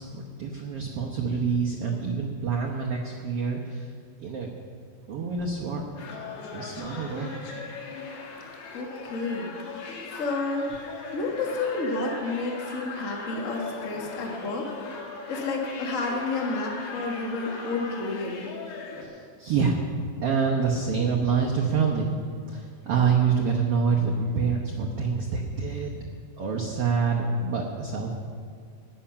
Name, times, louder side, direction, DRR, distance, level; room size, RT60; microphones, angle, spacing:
voice 1, 0.0-3.9 4.2-4.5 5.1-5.8 6.5-7.4 19.0-19.8 20.2-22.1 22.5-26.0 26.4-28.2, right 5 dB, 85° right, -1 dB, 1.3 m, -26 dB
sound 1, 6.0-19.0, left 4 dB, 85° left, 3.7 m, -39 dB
voice 2, 8.7-9.8 10.1-10.7 11.1-14.7 15.3-18.4, left 3 dB, 65° left, 0 dB, 0.7 m, -30 dB
16.0 x 10.0 x 5.8 m, 2.1 s
omnidirectional pair, 4.4 m